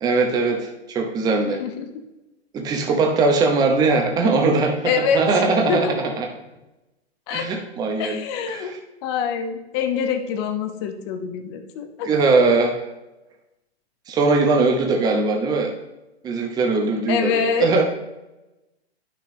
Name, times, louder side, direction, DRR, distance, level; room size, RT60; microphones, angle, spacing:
voice 1, 0.0-1.6 2.5-6.3 7.3-8.2 8.5-8.8 12.0-12.8 14.1-15.7 16.2-17.8, right 3 dB, 10° right, 3 dB, 0.8 m, -20 dB
voice 2, 1.5-2.1 4.8-6.1 7.3-7.5 8.0-8.8 9.0-12.1 17.1-17.7, left 6 dB, 25° left, 7 dB, 0.7 m, -25 dB
11.0 x 6.1 x 3.1 m, 0.98 s
figure-of-eight pair, 115°, 33 cm